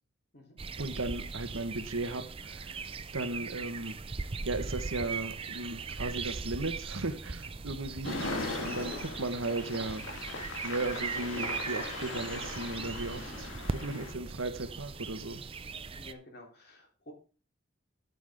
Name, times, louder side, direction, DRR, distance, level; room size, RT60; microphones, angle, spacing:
sound 1, 0.6-16.1, right 4 dB, 30° right, 0.5 m, -39 dB
voice 1, 0.8-2.8 3.1-4.0 4.4-8.9 9.2-10.1 10.6-15.4, right 2 dB, 85° right, 9 dB, 1.3 m, -36 dB
sound 2, 8.0-14.1, left 2 dB, 75° left, 2.1 m, -39 dB
voice 2, 8.9-9.2 16.0-17.1, left 1 dB, 50° left, 1 dB, 3.4 m, -51 dB
12.0 x 8.4 x 3.6 m, 0.38 s
head